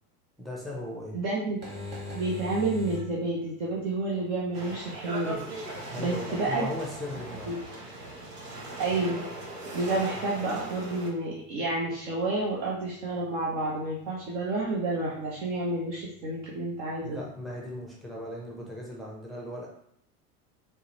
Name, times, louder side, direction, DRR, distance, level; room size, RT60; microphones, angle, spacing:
voice 1, 0.4-1.2 5.9-7.6 17.0-19.7, left 1 dB, ahead, -3 dB, 0.6 m, -37 dB
voice 2, 1.1-1.6 2.1-5.3 6.0-6.7 7.5-7.6 8.8-9.2 9.7-17.2, right 2 dB, 50° right, -4 dB, 0.9 m, -30 dB
sound 1, 1.5-18.7, left 3 dB, 20° right, 1.4 m, -48 dB
sound 2, 4.5-11.1, right 1 dB, 75° right, 1.1 m, -39 dB
4.5 x 2.1 x 3.1 m, 0.70 s
hypercardioid pair, 80°, 47 cm